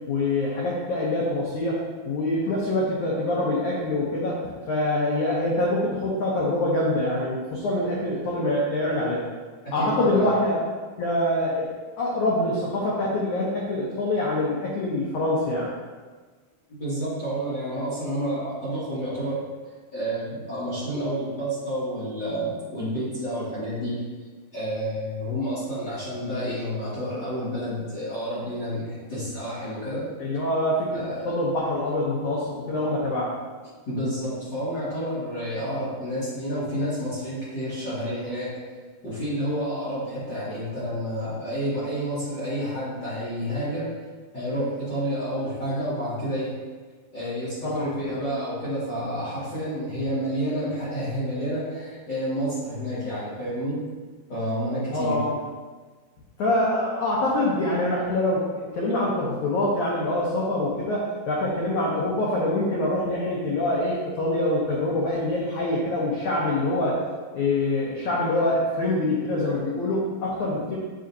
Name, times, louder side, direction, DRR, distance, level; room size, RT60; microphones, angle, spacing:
voice 1, 0.1-4.4 4.7-9.2 9.7-10.6 11.0-11.7 12.0-15.7 30.2-33.3 47.6-48.1 54.9-55.3 56.4-67.0 67.3-70.8, left 1 dB, 85° left, -5 dB, 1.6 m, -25 dB
voice 2, 9.6-10.3 16.7-19.4 19.9-24.0 24.5-30.1 30.9-31.3 32.6-32.7 33.9-38.5 39.0-44.0 44.3-46.6 47.1-53.9 54.3-55.2, equal, 40° left, -11 dB, 1.8 m, -29 dB
7.7 x 5.6 x 2.7 m, 1.4 s
omnidirectional pair, 4.8 m